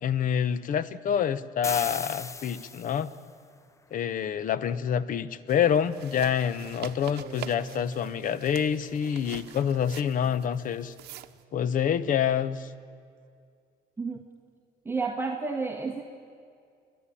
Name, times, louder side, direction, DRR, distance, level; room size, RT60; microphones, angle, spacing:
voice 1, 0.0-3.1 3.9-10.9 11.5-12.7, left 8 dB, 50° left, 16 dB, 0.9 m, -27 dB
sound 1, 1.6-3.2, left 3 dB, 15° left, 0.7 m, -36 dB
sound 2, 5.5-11.4, right 13 dB, 75° right, 0.9 m, -45 dB
sound 3, 7.2-9.8, right 5 dB, 40° right, 1.8 m, -46 dB
voice 2, 14.0-14.3 14.8-16.0, right 4 dB, 15° right, -1 dB, 1.5 m, -31 dB
29.5 x 11.5 x 9.9 m, 2.3 s
cardioid pair, 110°, 17 cm